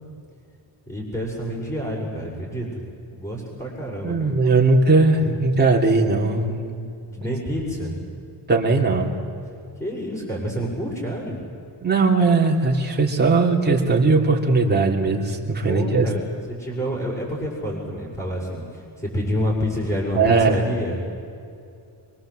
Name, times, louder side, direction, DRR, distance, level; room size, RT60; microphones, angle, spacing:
voice 1, 0.9-4.3 7.1-7.9 9.8-11.4 15.6-21.1, equal, 15° left, -8 dB, 6.5 m, -28 dB
voice 2, 4.0-6.8 8.5-9.1 11.8-16.1 20.1-20.6, right 3 dB, 25° right, -1 dB, 3.1 m, -19 dB
25.0 x 23.5 x 7.9 m, 2.5 s
cardioid pair, 135°, 43 cm